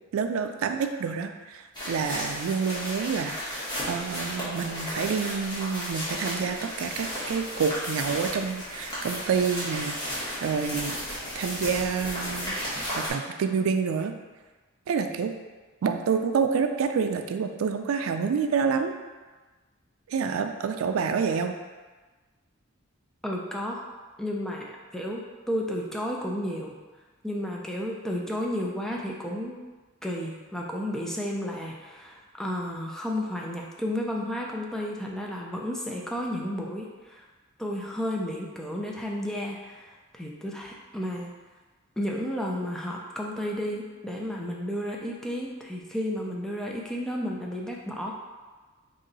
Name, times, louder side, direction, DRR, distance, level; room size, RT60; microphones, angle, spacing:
voice 1, 0.1-12.6 13.0-14.1 14.9-15.3 15.8-18.9 20.1-21.6, right 6 dB, 80° right, 7 dB, 0.3 m, -28 dB
sound 1, 1.7-13.1, equal, 20° left, 1.1 m, -34 dB
voice 2, 23.2-23.8 24.2-26.7 27.2-29.6 30.0-37.2 37.6-41.3 42.0-48.1, equal, ahead, -2 dB, 0.3 m, -32 dB
3.1 x 2.8 x 3.8 m, 1.3 s
head